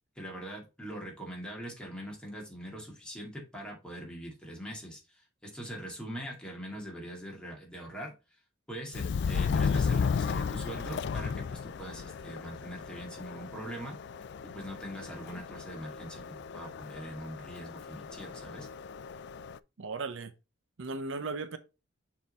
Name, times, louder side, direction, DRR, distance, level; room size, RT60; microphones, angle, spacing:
voice 1, 0.2-8.1 8.7-14.0 14.5-18.7, equal, 5° left, 2.2 m, -42 dB
Subway metro underground, 8.9-19.6, left 6 dB, 60° left, 0.3 m, -34 dB
voice 2, 19.8-20.3 20.8-21.6, right 3 dB, 70° right, 0.7 m, -36 dB
6.5 x 3.8 x 4.0 m
head